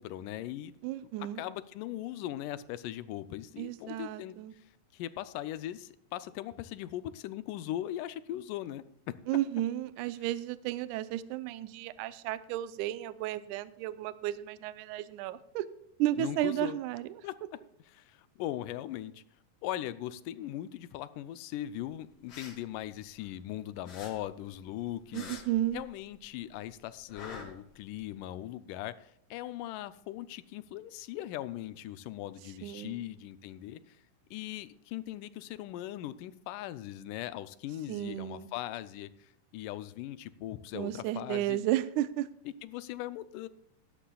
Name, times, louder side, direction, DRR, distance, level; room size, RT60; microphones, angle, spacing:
voice 1, 0.0-0.7 1.2-9.2 16.2-16.8 17.2-17.4 17.9-19.2 19.6-25.4 25.7-34.0 34.3-41.6 42.5-43.5, left 13 dB, 80° left, 14 dB, 2.1 m, -39 dB
voice 2, 0.8-1.4 3.6-4.5 9.3-15.7 16.0-17.1 25.1-25.8 32.6-33.0 37.9-38.5 40.7-42.3, right 14 dB, 80° right, 14 dB, 1.9 m, -33 dB
sound 1, 22.1-23.5 23.8-26.2 26.5-28.1, left 4 dB, 50° left, 2.5 m, -48 dB
17.0 x 11.5 x 2.3 m, 0.72 s
omnidirectional pair, 3.9 m